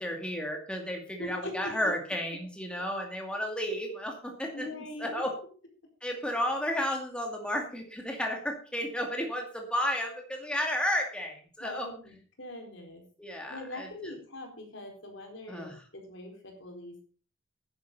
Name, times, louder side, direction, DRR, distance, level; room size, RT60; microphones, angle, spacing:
voice 1, 0.0-4.7 5.0-5.3 6.0-11.9 13.2-14.1 15.5-15.8, equal, 5° left, 1 dB, 2.3 m, -33 dB
voice 2, 1.2-1.9 2.8-2.9 4.5-5.2 11.6-13.0 13.5-17.0, left 2 dB, 65° left, 3 dB, 4.3 m, -42 dB
10.5 x 10.5 x 5.5 m, 0.41 s
head